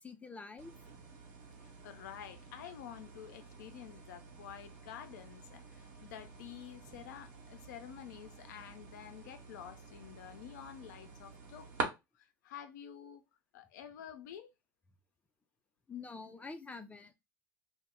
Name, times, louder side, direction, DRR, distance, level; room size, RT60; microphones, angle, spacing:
voice 1, 0.0-0.7 15.9-17.1, left 4 dB, 15° left, 0.5 m, -46 dB
sound 1, 0.6-11.8, right 5 dB, 65° right, 0.8 m, -47 dB
voice 2, 1.8-13.2 13.5-14.5, left 9 dB, 75° left, 0.5 m, -50 dB
2.0 x 2.0 x 3.6 m
hypercardioid pair, 80°, 10 cm